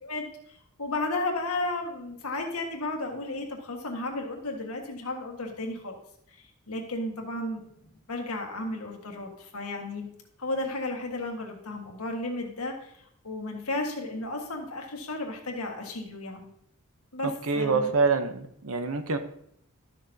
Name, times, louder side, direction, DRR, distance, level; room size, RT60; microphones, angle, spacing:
voice 1, 0.0-6.0 6.7-10.1 10.4-16.5 17.1-17.9, left 2 dB, 90° left, 2 dB, 1.6 m, -34 dB
voice 2, 17.5-19.2, right 4 dB, 75° right, 9 dB, 0.8 m, -25 dB
12.0 x 6.7 x 2.8 m, 0.71 s
head